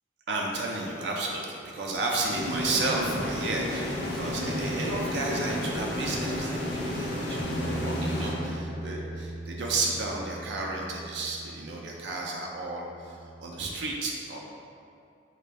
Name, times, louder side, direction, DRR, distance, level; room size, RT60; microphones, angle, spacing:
voice 1, 0.3-14.4, right 2 dB, 75° right, -1 dB, 0.4 m, -32 dB
sound 1, 2.3-9.1, left 1 dB, 80° left, 0.6 m, -32 dB
Bass guitar, 7.4-13.6, right 1 dB, 20° left, 0.3 m, -40 dB
3.9 x 2.2 x 3.3 m, 2.5 s
head